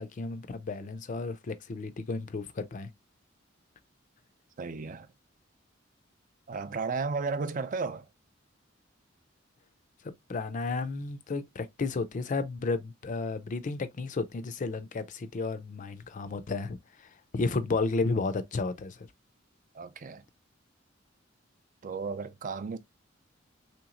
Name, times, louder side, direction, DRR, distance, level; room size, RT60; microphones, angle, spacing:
voice 1, 0.0-2.9 10.3-19.1, left 3 dB, 40° left, 0.4 m, -33 dB
voice 2, 4.6-5.1 6.5-8.1 19.7-20.2 21.8-22.8, right 4 dB, 40° right, 0.4 m, -34 dB
3.4 x 2.9 x 2.4 m
head